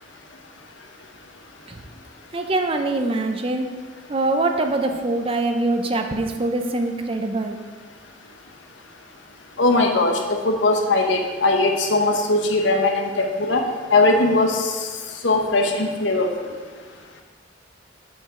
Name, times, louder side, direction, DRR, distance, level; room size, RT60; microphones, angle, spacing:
voice 1, 2.3-3.7 4.1-7.6, right 2 dB, 30° right, 5 dB, 0.6 m, -23 dB
voice 2, 9.6-10.2 10.4-13.6 13.9-14.9 15.2-16.5, left 2 dB, 75° left, 3 dB, 0.9 m, -20 dB
7.2 x 5.2 x 4.9 m, 1.5 s
head